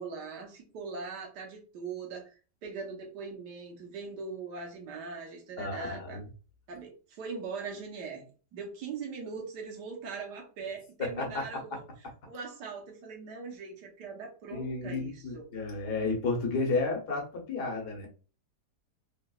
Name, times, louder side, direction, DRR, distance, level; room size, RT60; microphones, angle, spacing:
voice 1, 0.0-6.2 6.7-8.2 8.5-11.8 12.3-15.4, right 5 dB, 85° right, 0 dB, 1.6 m, -41 dB
voice 2, 5.6-6.2 11.0-11.6 12.0-12.1 14.5-18.1, left 3 dB, 75° left, 1 dB, 1.7 m, -32 dB
3.9 x 3.5 x 2.3 m, 0.35 s
omnidirectional pair, 1.7 m